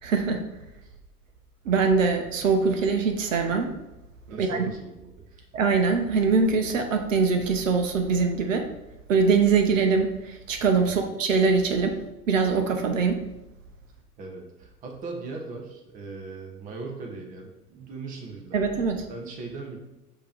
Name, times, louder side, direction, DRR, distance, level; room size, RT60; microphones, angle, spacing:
voice 1, 0.0-0.4 1.6-3.7 4.3-4.7 5.5-8.7 9.1-12.0 12.3-13.2 18.5-19.0, right 4 dB, 55° right, 5 dB, 0.9 m, -23 dB
voice 2, 4.3-5.4 10.8-11.1 14.2-19.8, right 3 dB, 15° right, 1 dB, 0.8 m, -39 dB
6.7 x 2.9 x 5.0 m, 0.97 s
figure-of-eight pair, 95°, 47 cm